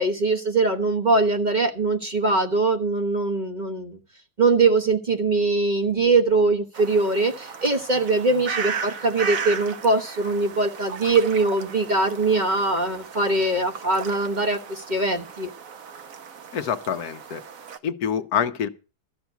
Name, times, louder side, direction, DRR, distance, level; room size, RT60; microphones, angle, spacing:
voice 1, 0.0-4.0 4.4-15.5, right 3 dB, 30° right, 1.1 m, -22 dB
sound 1, 6.7-17.8, right 6 dB, 60° right, 1.4 m, -36 dB
voice 2, 16.5-17.4 17.8-18.7, left 8 dB, 70° left, 1.4 m, -26 dB
13.5 x 5.9 x 8.0 m
omnidirectional pair, 1.7 m